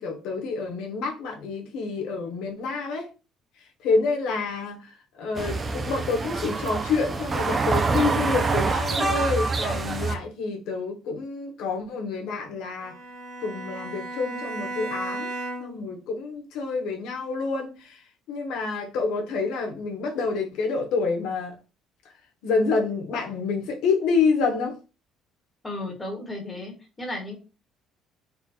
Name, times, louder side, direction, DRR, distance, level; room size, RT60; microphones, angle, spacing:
voice 1, 0.0-3.1 3.8-13.0 13.4-15.3 15.6-18.0 18.3-21.5 22.4-24.8, left 4 dB, 80° left, 1.1 m, -28 dB
sound 1, 5.4-10.2, right 3 dB, 20° right, 0.5 m, -26 dB
Bowed string instrument, 12.8-15.9, right 2 dB, 75° right, 1.1 m, -35 dB
voice 2, 25.6-27.4, left 1 dB, 15° left, 1.3 m, -34 dB
4.2 x 2.4 x 4.2 m
cardioid pair, 165°, 0 cm